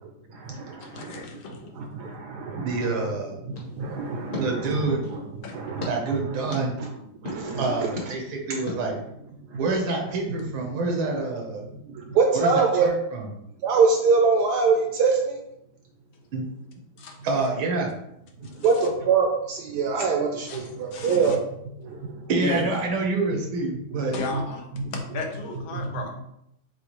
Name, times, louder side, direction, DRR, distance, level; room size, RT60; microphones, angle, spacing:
voice 1, 0.8-1.8 5.4-5.8 17.0-17.2 18.4-18.7 20.5-21.4 22.4-22.8 24.1-24.7 24.9-26.1, left 3 dB, 80° left, 1 dB, 1.6 m, -34 dB
voice 2, 2.6-3.4 4.4-5.0 5.9-6.8 7.6-9.0 9.6-11.6 12.3-13.3 16.3-16.5 17.2-17.9 22.3-24.1, right 3 dB, 85° right, 1 dB, 1.8 m, -27 dB
sound 1, 3.5-5.3 5.8-5.9 6.5-6.6 7.3-7.4 8.0-8.1 8.7-8.8, left 3 dB, 45° left, 1.3 m, -37 dB
voice 3, 3.8-5.2 5.5-6.2 7.3-7.9 12.2-12.9 13.6-15.3 18.6-21.3 24.3-24.4, right 5 dB, 70° right, 2 dB, 1.0 m, -23 dB
6.7 x 2.3 x 3.0 m, 0.79 s
omnidirectional pair, 2.2 m